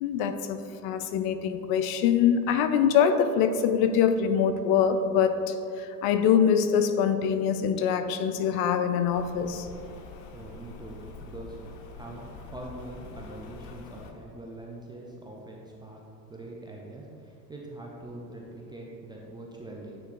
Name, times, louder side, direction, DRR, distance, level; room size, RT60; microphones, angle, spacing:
voice 1, 0.0-9.7, left 7 dB, 50° left, 9 dB, 0.5 m, -24 dB
Rain, 9.1-14.1, left 4 dB, 70° left, 0.9 m, -45 dB
voice 2, 10.3-11.6 11.9-16.0 16.3-20.0, right 1 dB, 10° right, -3 dB, 0.3 m, -43 dB
9.2 x 3.3 x 3.8 m, 2.7 s
supercardioid pair, 105°, 49 cm